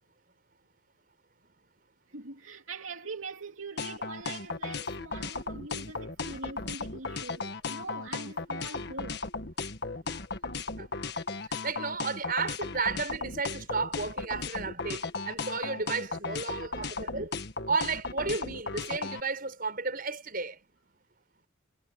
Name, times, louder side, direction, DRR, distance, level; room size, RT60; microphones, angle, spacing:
voice 1, 2.1-9.2, right 3 dB, 80° right, 2.7 m, -43 dB
sound 1, 3.8-19.2, left 4 dB, 55° left, 1.7 m, -35 dB
voice 2, 11.6-17.4 17.7-20.6, right 4 dB, 45° right, 6.8 m, -33 dB
head